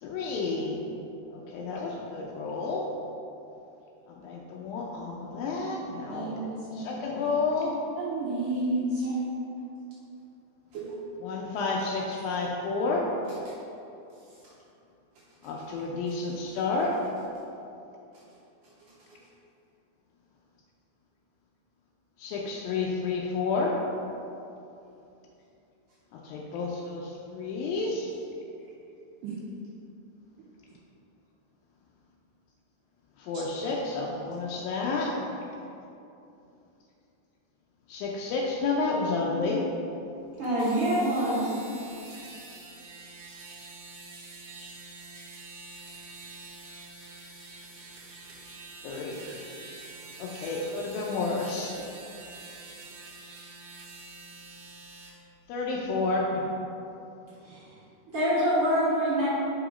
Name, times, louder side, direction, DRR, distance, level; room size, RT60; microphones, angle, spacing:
voice 1, 0.0-0.8 1.3-2.9 4.1-7.7 11.2-13.1 15.4-17.0 22.2-23.8 26.1-28.1 33.2-35.1 37.9-39.7 48.8-49.4 50.2-51.8 55.5-56.4, left 3 dB, 85° left, -2 dB, 2.0 m, -30 dB
voice 2, 5.3-5.7 6.1-7.0 8.0-9.3 10.7-11.0 29.2-29.3, right 2 dB, 85° right, -7 dB, 1.9 m, -32 dB
voice 3, 40.4-41.5 49.2-49.3 57.4-57.6 58.1-59.3, equal, 55° right, -11 dB, 1.7 m, -25 dB
sound 1, 40.4-55.1, right 3 dB, 70° right, 2.2 m, -46 dB
5.6 x 5.0 x 4.9 m, 2.8 s
omnidirectional pair, 4.8 m